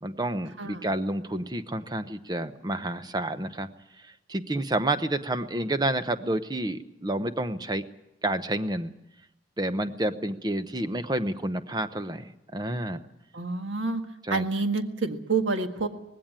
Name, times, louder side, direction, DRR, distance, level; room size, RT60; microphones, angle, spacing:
voice 1, 0.0-3.7 4.0-7.8 8.2-8.9 9.6-13.0 14.2-14.4, right 1 dB, 20° right, 11 dB, 0.8 m, -29 dB
voice 2, 13.3-14.0 14.3-15.9, right 3 dB, 85° right, 6 dB, 1.7 m, -28 dB
19.0 x 16.5 x 9.0 m, 0.94 s
head